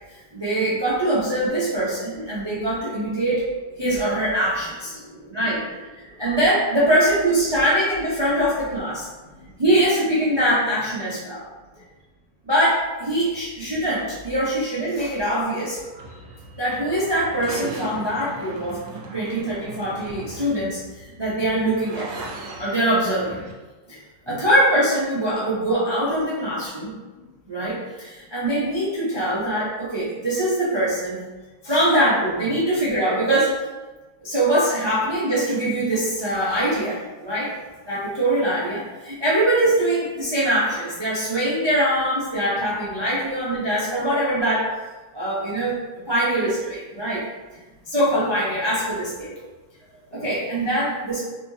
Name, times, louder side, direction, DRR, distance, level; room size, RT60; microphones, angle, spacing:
voice 1, 0.1-3.4 3.8-5.0 5.3-9.1 9.6-11.5 12.5-15.8 16.6-18.8 19.1-22.1 22.6-23.4 23.9-24.0 24.3-26.9 27.5-31.3 31.6-33.6 34.2-37.5 37.9-44.7 45.1-47.2 47.9-49.3 50.1-51.2, right 1 dB, 35° right, -8 dB, 0.4 m, -23 dB
voice 2, 4.2-6.2 9.2-9.6 10.3-10.7 11.6-11.9 19.2-19.4 24.2-24.4 27.2-27.3 33.2-33.3 49.8-50.3, right 1 dB, 75° left, -7 dB, 1.9 m, -47 dB
sound 1, 15.8-23.5, right 2 dB, 80° right, 1.2 m, -38 dB
4.2 x 2.7 x 2.7 m, 1.2 s
omnidirectional pair, 1.7 m